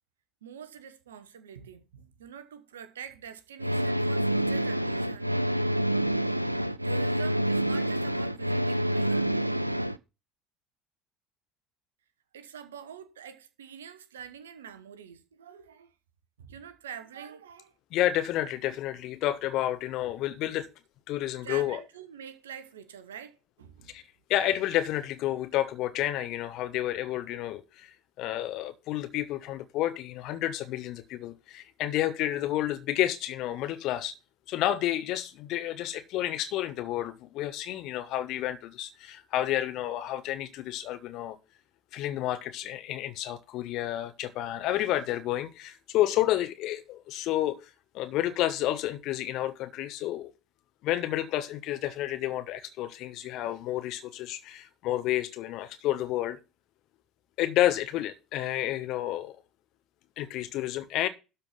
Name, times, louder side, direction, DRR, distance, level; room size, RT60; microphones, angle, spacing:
voice 1, 0.4-5.3 6.8-9.3 12.3-15.9 16.4-17.7 21.4-23.9, right 8 dB, 70° right, 1.1 m, -45 dB
sound 1, 3.6-10.0, right 1 dB, 90° right, 0.4 m, -27 dB
voice 2, 17.9-20.7 21.1-21.8 23.9-24.0 24.3-34.1 34.5-41.4 41.9-47.6 47.9-50.3 50.8-56.4 57.4-59.4 60.2-61.1, left 13 dB, 50° left, 1.4 m, -30 dB
12.5 x 4.4 x 5.7 m
figure-of-eight pair, 65°, 0 cm